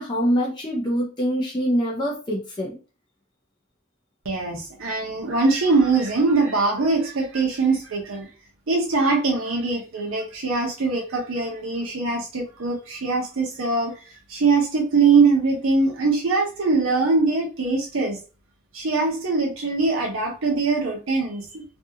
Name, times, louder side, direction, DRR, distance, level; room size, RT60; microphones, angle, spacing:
voice 1, 0.0-2.8, equal, 20° left, -2 dB, 0.5 m, -24 dB
voice 2, 4.3-8.3 8.7-18.2 18.7-21.6, right 4 dB, 65° right, -1 dB, 0.6 m, -22 dB
2.6 x 2.3 x 2.7 m, 0.34 s
head